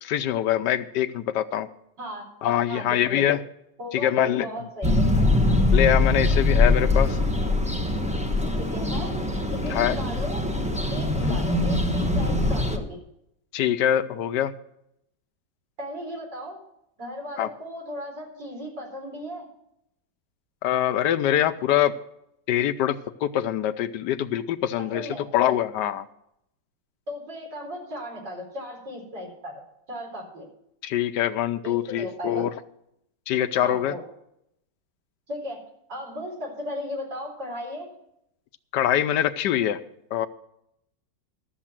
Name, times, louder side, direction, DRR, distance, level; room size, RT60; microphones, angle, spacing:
voice 1, 0.0-1.7 2.4-3.4 3.9-4.5 5.7-7.2 9.7-10.0 11.2-11.4 13.5-14.5 17.4-17.5 20.6-21.9 22.5-22.9 23.2-26.1 30.8-32.5 33.3-33.9 38.7-39.8 40.1-40.3, left 11 dB, 70° left, 12 dB, 1.2 m, -24 dB
voice 2, 2.7-3.2 3.8-5.0 8.6-9.1 9.5-10.4 10.9-13.0 15.8-16.6 17.0-19.5 24.8-25.3 27.1-29.6 29.9-30.5 31.6-32.4 33.6-34.0 35.3-35.6 35.9-37.9, left 1 dB, 65° right, -1 dB, 4.6 m, -36 dB
sound 1, 4.8-12.8, left 2 dB, 5° right, 0.7 m, -22 dB
12.5 x 7.1 x 7.4 m, 0.77 s
omnidirectional pair, 2.0 m